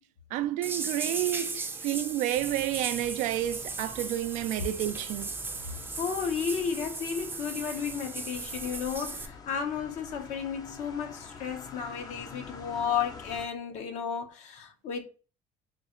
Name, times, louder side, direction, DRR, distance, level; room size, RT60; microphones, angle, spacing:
voice 1, 0.3-5.3, right 13 dB, 70° right, 0.4 m, -30 dB
sound 1, 0.6-9.3, right 4 dB, 15° right, 0.5 m, -37 dB
sound 2, 2.3-13.5, left 4 dB, 30° left, 0.5 m, -48 dB
voice 2, 6.0-15.0, left 7 dB, 60° left, 0.9 m, -33 dB
3.8 x 2.4 x 2.9 m
cardioid pair, 120°, 13 cm